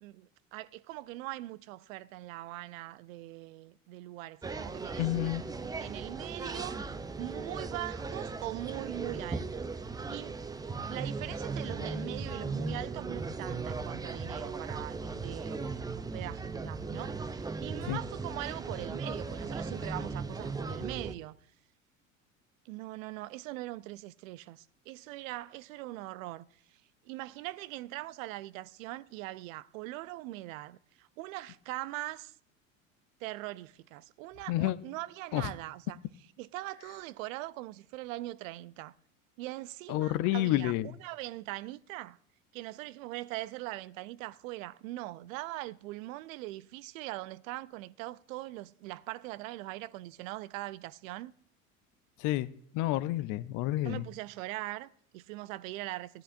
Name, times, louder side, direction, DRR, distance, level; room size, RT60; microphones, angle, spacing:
voice 1, 0.0-5.1 5.6-6.8 7.2-10.4 10.9-21.4 22.7-26.8 27.1-32.3 33.2-36.0 36.4-38.9 39.4-42.2 42.5-51.3 53.8-56.2, right 17 dB, 70° right, 0.6 m, -41 dB
sound 1, 4.4-21.1, right 4 dB, 10° right, 0.5 m, -37 dB
voice 2, 5.0-5.4 17.9-18.0 34.5-34.8 35.3-35.4 39.9-40.9 52.2-52.5 52.7-54.0, left 16 dB, 50° left, 0.6 m, -29 dB
16.0 x 10.5 x 2.6 m
hypercardioid pair, 75°, 42 cm